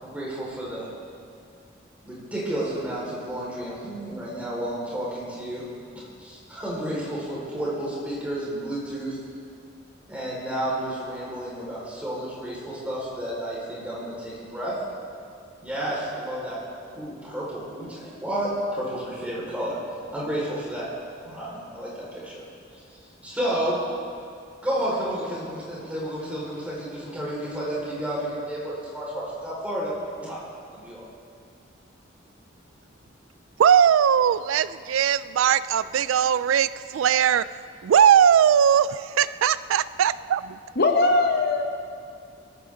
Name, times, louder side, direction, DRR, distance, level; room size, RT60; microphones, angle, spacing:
voice 1, 0.0-0.8 2.0-5.6 6.2-9.2 10.1-14.7 15.6-16.6 16.9-19.8 20.1-20.9 21.2-22.4 23.2-23.8 24.6-30.4 30.7-31.1, right 1 dB, 5° right, -7 dB, 4.9 m, -31 dB
voice 2, 33.6-37.5 37.8-40.4, right 8 dB, 90° right, 16 dB, 0.3 m, -19 dB
voice 3, 40.8-41.6, left 3 dB, 55° left, 4 dB, 1.0 m, -20 dB
23.0 x 13.5 x 3.9 m, 2.3 s
head